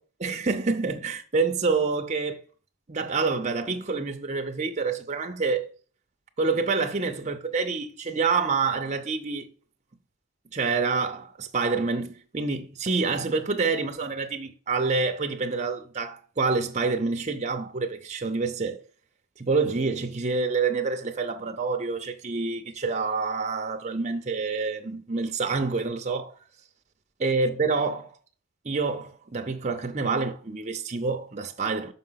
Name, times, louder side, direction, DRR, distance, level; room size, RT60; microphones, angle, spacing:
voice 1, 0.2-2.4 2.9-5.7 6.4-9.5 10.5-18.8 19.4-26.3 27.2-28.1 28.6-31.9, right 4 dB, 30° right, 0.6 m, -27 dB
5.8 x 4.6 x 5.7 m
head